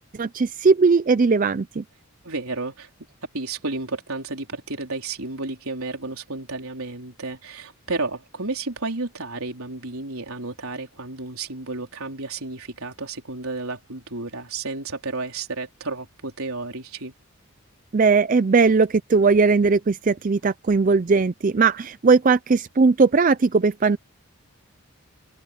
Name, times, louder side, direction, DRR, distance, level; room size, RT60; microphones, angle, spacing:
voice 1, 0.2-1.8 17.9-24.0, right 4 dB, 35° right, 0.4 m, -19 dB
voice 2, 2.2-2.9 3.3-17.1, right 3 dB, 75° right, 4.1 m, -32 dB
open air
head